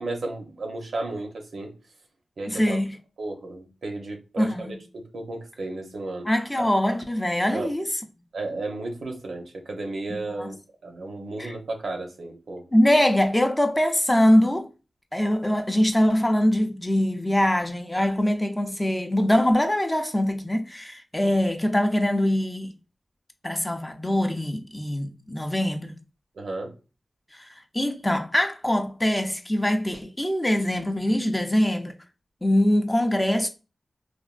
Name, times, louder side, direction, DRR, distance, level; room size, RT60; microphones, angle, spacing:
voice 1, 0.0-1.7 2.4-2.8 3.2-6.3 6.6-6.7 7.5-7.7 8.3-10.6 10.8-12.6 26.4-26.7, right 2 dB, 80° right, 0.7 m, -33 dB
voice 2, 2.5-3.0 4.4-4.8 6.2-8.0 10.1-10.5 11.4-11.5 12.7-14.7 15.1-22.7 23.4-25.9 27.3-31.9 32.4-33.5, left 1 dB, 15° left, 0.4 m, -23 dB
3.3 x 2.2 x 2.3 m
wide cardioid pair, 110°, 0 cm